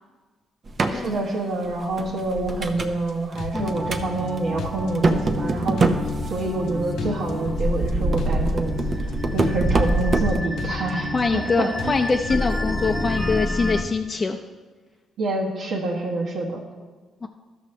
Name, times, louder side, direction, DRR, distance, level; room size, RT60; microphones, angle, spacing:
sound 1, 0.7-1.0 1.6-3.0 3.3-4.1 4.4-4.5 4.8-6.8 7.4-10.4, right 2 dB, 40° right, 0.7 m, -24 dB
voice 1, 0.9-5.8 6.3-11.9 15.2-16.6, right 2 dB, 75° right, -3 dB, 1.2 m, -27 dB
sound 2, 2.8-3.1 3.4-4.3 4.6-5.5 5.8-6.7 7.0-7.9 8.2-9.1 9.4-10.3 10.6-11.5 11.8-12.4, left 5 dB, 75° left, 0.7 m, -36 dB
sound 3, 3.5-13.8, left 1 dB, 5° left, 0.9 m, -30 dB
voice 2, 11.1-14.4 17.2-17.3, left 4 dB, 30° left, 3 dB, 0.5 m, -23 dB
13.0 x 6.3 x 3.2 m, 1.4 s
cardioid pair, 90°, 0 cm